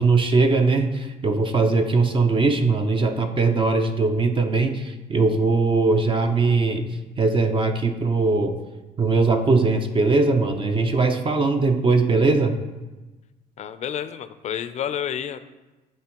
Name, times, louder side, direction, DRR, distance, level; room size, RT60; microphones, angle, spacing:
voice 1, 0.0-6.9 7.2-8.5 9.0-12.6, right 3 dB, 30° right, 6 dB, 0.5 m, -20 dB
voice 2, 13.6-15.4, left 9 dB, 40° left, 12 dB, 0.5 m, -30 dB
12.0 x 4.2 x 3.0 m, 1.2 s
cardioid pair, 110°, 17 cm